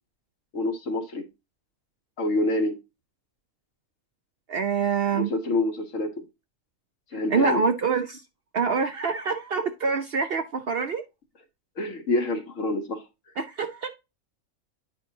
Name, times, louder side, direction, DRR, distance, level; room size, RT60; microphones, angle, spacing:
voice 1, 0.5-1.3 2.2-2.8 5.1-6.1 7.1-7.6 11.8-13.0, left 2 dB, 65° left, 1.5 m, -27 dB
voice 2, 4.5-5.3 7.3-8.2 8.5-11.0 13.4-13.9, right 5 dB, 60° right, 0.7 m, -25 dB
9.4 x 4.6 x 2.8 m
omnidirectional pair, 1.5 m